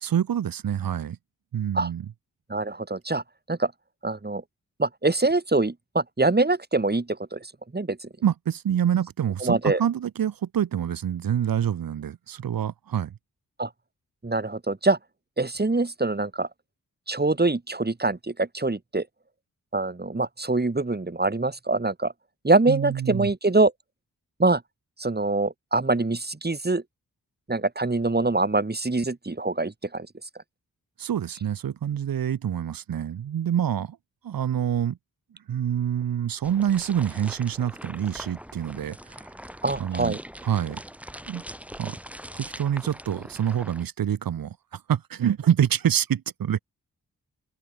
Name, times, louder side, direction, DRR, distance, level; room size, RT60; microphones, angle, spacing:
voice 1, 0.0-1.2 1.5-2.1 8.2-13.1 22.7-23.3 31.0-34.0 34.2-35.0 35.5-39.2 39.8-40.8 41.3-41.4 41.8-42.0 42.4-46.6, right 9 dB, 80° right, 1.1 m, -26 dB
voice 2, 2.5-3.2 3.5-3.7 4.0-4.4 4.8-7.1 7.3-7.4 7.7-8.0 9.4-9.8 13.6-13.7 14.2-15.0 15.4-16.5 17.1-19.0 19.7-22.1 22.4-23.7 24.4-24.6 25.0-26.8 27.5-30.1 39.6-40.2, right 2 dB, 30° right, 2.7 m, -24 dB
sound 1, 36.4-43.8, equal, 5° right, 3.4 m, -42 dB
open air
cardioid pair, 45°, 35 cm